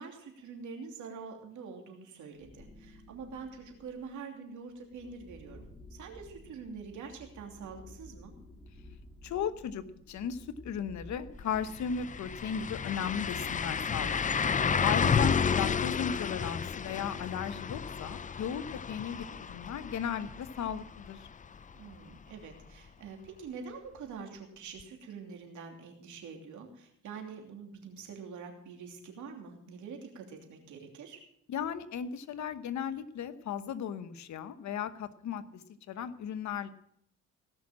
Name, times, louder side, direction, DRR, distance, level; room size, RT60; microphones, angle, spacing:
voice 1, 0.0-8.3 21.7-31.2, right 5 dB, 75° right, 2 dB, 3.0 m, -45 dB
sound 1, 2.4-4.1 4.7-17.2, left 1 dB, 10° left, 2.8 m, -53 dB
voice 2, 9.2-14.2 14.8-21.2 31.5-36.7, left 8 dB, 70° left, 12 dB, 1.1 m, -36 dB
sound 2, 11.4-11.5 11.8-21.6 21.9-22.0 24.8-24.9, left 6 dB, 25° left, 0.5 m, -31 dB
17.5 x 6.2 x 7.5 m, 0.72 s
cardioid pair, 90°, 30 cm